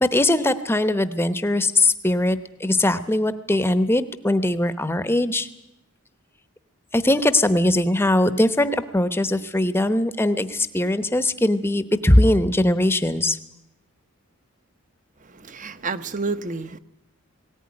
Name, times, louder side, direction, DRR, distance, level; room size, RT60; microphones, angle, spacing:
voice 1, 0.0-5.5 6.9-13.4, left 1 dB, 10° left, 11 dB, 0.9 m, -20 dB
voice 2, 15.2-16.8, right 4 dB, 35° right, 12 dB, 0.9 m, -30 dB
18.5 x 18.5 x 9.7 m, 0.88 s
head